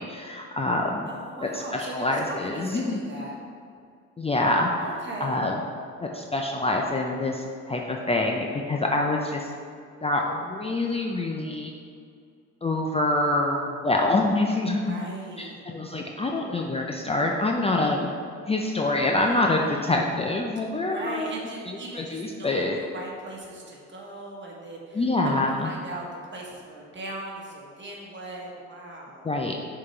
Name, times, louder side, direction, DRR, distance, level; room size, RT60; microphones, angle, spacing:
voice 1, 0.0-1.1 1.4-3.0 4.2-4.7 5.2-5.6 6.0-9.5 10.0-11.7 12.6-15.0 15.4-18.1 18.5-21.3 21.7-22.8 24.9-25.7 29.2-29.5, left 2 dB, 20° left, 1 dB, 0.5 m, -26 dB
voice 2, 1.1-3.3 4.8-5.4 14.7-15.6 19.2-20.0 20.8-29.3, right 2 dB, 40° right, -2 dB, 1.5 m, -39 dB
6.2 x 3.9 x 4.5 m, 2.3 s
cardioid pair, 90°, 30 cm